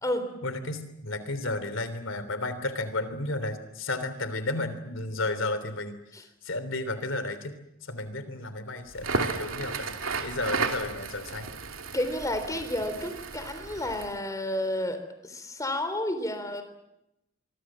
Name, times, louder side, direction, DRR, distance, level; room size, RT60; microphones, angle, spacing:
voice 1, 0.4-7.6 7.8-10.0 10.2-11.5, left 2 dB, 65° left, 12 dB, 3.4 m, -33 dB
Crackle, 8.9-14.2, right 4 dB, 80° right, 2.7 m, -33 dB
voice 2, 11.9-16.6, left 1 dB, 15° left, 9 dB, 3.6 m, -31 dB
25.5 x 24.0 x 7.6 m, 0.86 s
head